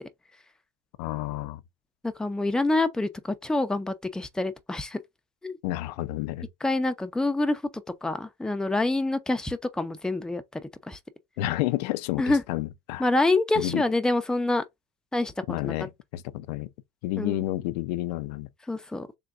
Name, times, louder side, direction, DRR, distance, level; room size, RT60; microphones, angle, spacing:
voice 1, 1.0-1.6 5.6-6.5 11.4-13.0 13.6-13.8 15.5-16.7 17.0-18.5, left 16 dB, 90° left, 0.4 m, -30 dB
voice 2, 2.0-5.0 5.4-5.6 6.6-7.6 8.0-11.0 12.2-12.4 13.0-14.6 15.1-15.3 15.6-15.7 17.2-17.4 18.7-19.1, left 2 dB, 5° left, 0.4 m, -26 dB
3.4 x 2.2 x 3.7 m
supercardioid pair, 115°, 20 cm